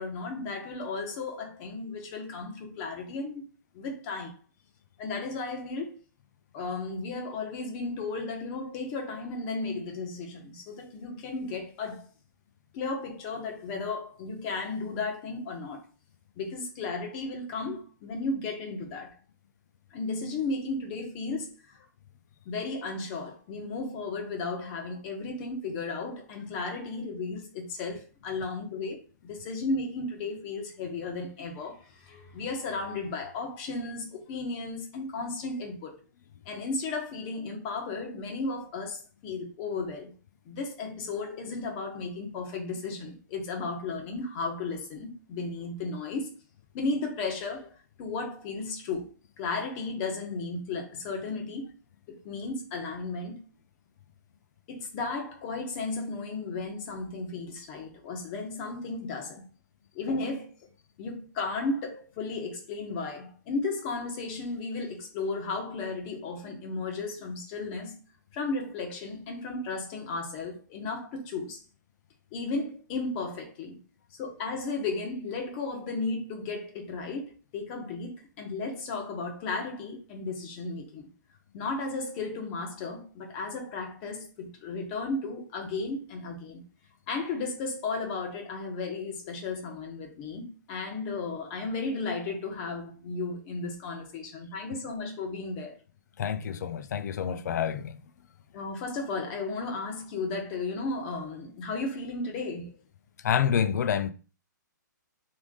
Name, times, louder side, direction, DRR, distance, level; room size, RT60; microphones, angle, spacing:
voice 1, 0.0-3.4 3.7-4.4 5.0-5.9 6.5-12.0 12.7-15.8 16.4-19.1 19.9-21.8 22.4-36.0 36.4-40.1 40.4-46.3 46.7-47.7 48.0-49.1 49.4-51.7 52.1-53.4 54.7-59.4 59.9-60.5 61.0-68.0 68.3-71.6 72.3-73.8 74.2-81.1 81.5-86.6 87.1-95.7 98.5-102.7, left 3 dB, 35° left, 1.5 m, -34 dB
voice 2, 96.2-97.9 103.2-104.1, left 8 dB, 60° left, 0.5 m, -27 dB
3.5 x 3.4 x 3.8 m
hypercardioid pair, 140°, 10 cm